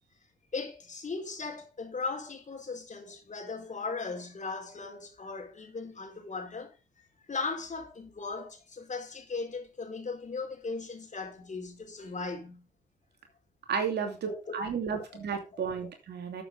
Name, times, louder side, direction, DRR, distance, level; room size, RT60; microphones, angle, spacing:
voice 1, 0.5-6.8 7.3-12.7 14.0-14.5 15.0-15.2 15.5-15.6, left 4 dB, 40° left, 4.3 m, -38 dB
voice 2, 13.7-16.4, right 6 dB, 60° right, 2.8 m, -33 dB
13.0 x 7.5 x 3.6 m
hypercardioid pair, 40°, 20 cm